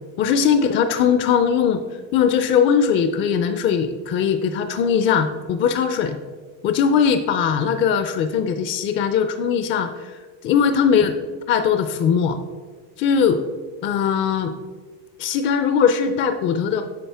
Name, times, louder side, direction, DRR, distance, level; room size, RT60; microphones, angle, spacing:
voice 1, 0.2-1.8 2.1-6.2 6.6-11.1 11.5-12.4 13.0-13.4 13.8-14.5 15.2-16.8, left 7 dB, 35° left, 8 dB, 0.4 m, -20 dB
8.7 x 6.3 x 3.4 m, 1.4 s
cardioid pair, 140°, 35 cm